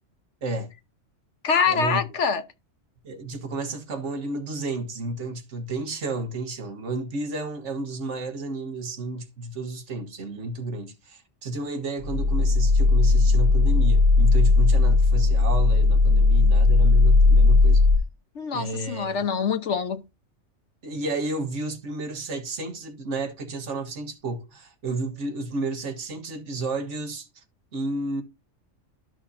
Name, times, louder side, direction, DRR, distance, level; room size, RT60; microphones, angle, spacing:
voice 1, 0.4-0.7 1.7-2.0 3.0-17.9 18.5-19.2 20.8-27.3 27.7-28.2, right 2 dB, 70° right, 1.7 m, -32 dB
voice 2, 1.4-2.4 18.3-20.0, left 6 dB, 65° left, 1.3 m, -25 dB
sound 1, 12.0-18.0, left 3 dB, 20° right, 3.5 m, -17 dB
12.5 x 6.0 x 2.7 m
omnidirectional pair, 1.3 m